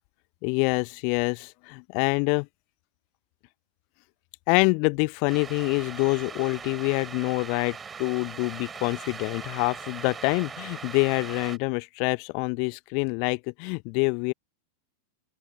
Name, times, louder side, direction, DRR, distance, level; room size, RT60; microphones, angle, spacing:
voice 1, 0.4-2.5 4.5-14.3, left 40 dB or more, 45° left, 0.9 m, -26 dB
sound 1, 5.3-11.6, right 6 dB, 15° right, 7.8 m, -40 dB
open air
figure-of-eight pair, 90°, 0 cm